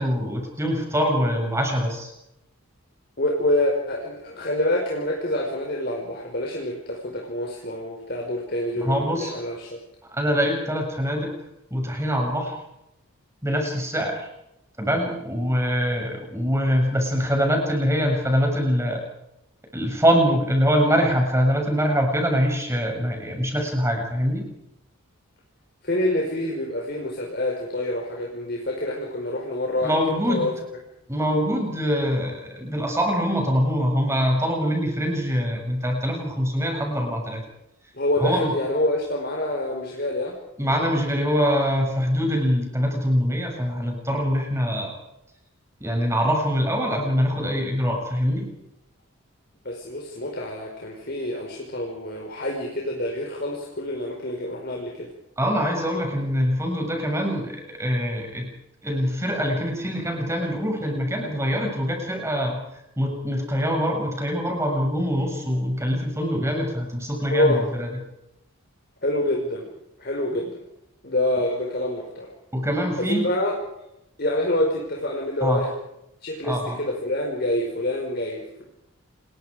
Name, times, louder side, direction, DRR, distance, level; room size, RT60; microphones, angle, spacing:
voice 1, 0.0-2.1 8.8-9.3 10.1-11.3 11.7-12.6 13.4-14.3 14.8-19.0 19.7-24.4 29.8-30.5 31.1-37.4 38.2-38.5 40.6-44.9 45.8-48.5 55.4-58.5 58.8-62.6 63.0-67.9 72.5-73.3 75.4-75.6 76.4-76.8, equal, 10° right, 2 dB, 7.4 m, -24 dB
voice 2, 3.2-9.8 25.8-29.9 30.3-30.5 37.9-40.4 49.7-55.1 67.3-67.7 69.0-69.7 70.0-70.6 71.0-72.3 73.0-73.6 74.2-75.7 76.2-78.6, left 1 dB, 45° left, 0 dB, 5.1 m, -26 dB
29.0 x 22.5 x 5.1 m, 0.84 s
head